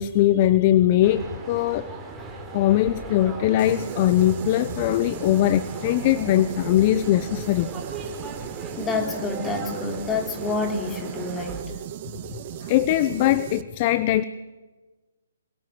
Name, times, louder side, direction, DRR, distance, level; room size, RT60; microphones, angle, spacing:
voice 1, 0.0-1.9 2.5-7.7 12.6-14.2, left 13 dB, 35° left, 15 dB, 0.9 m, -21 dB
sound 1, 1.0-11.6, right 3 dB, 10° right, 4.8 m, -38 dB
sound 2, 3.6-13.6, right 11 dB, 40° right, 1.6 m, -37 dB
voice 2, 8.8-11.6, left 3 dB, 15° left, 4 dB, 4.1 m, -28 dB
26.5 x 24.5 x 7.9 m, 1.3 s
hypercardioid pair, 145°, 0 cm